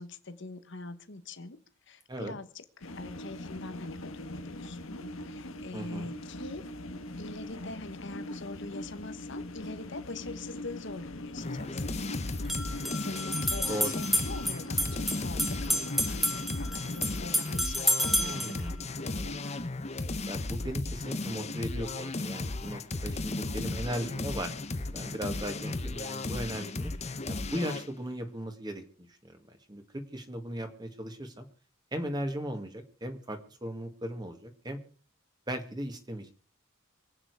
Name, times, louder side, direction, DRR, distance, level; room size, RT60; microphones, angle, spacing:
voice 1, 0.0-1.6 1.9-6.6 7.2-12.3 12.6-19.6, left 3 dB, 60° left, 1.3 m, -44 dB
sound 1, 2.8-17.2, left 1 dB, 85° left, 1.5 m, -42 dB
voice 2, 5.7-6.1 13.7-13.9 18.2-18.8 20.3-24.5 24.8-26.9 27.3-31.5 31.9-34.8 35.5-36.3, equal, 20° right, 1.9 m, -37 dB
sound 2, 10.7-10.8 12.3-18.6, equal, ahead, 1.3 m, -30 dB
sound 3, 11.4-27.9, left 2 dB, 30° left, 0.9 m, -35 dB
25.5 x 9.0 x 4.8 m
head